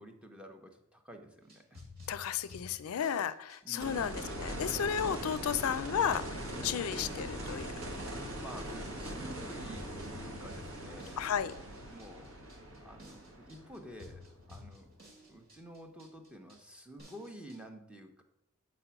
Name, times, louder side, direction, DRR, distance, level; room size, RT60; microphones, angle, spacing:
voice 1, 0.0-1.8 3.6-4.2 6.7-7.0 8.4-11.2 11.8-12.4 12.8-14.2 14.5-14.9 15.3-18.2, right 1 dB, 5° right, 4 dB, 0.8 m, -50 dB
sound 1, 1.4-17.6, left 2 dB, 45° right, 1.8 m, -54 dB
voice 2, 2.1-7.7 11.2-11.5, left 8 dB, 90° left, 14 dB, 0.4 m, -33 dB
sound 2, 3.8-14.7 17.0-17.1, right 1 dB, 75° right, 1.9 m, -41 dB
8.0 x 4.2 x 5.8 m, 0.84 s
head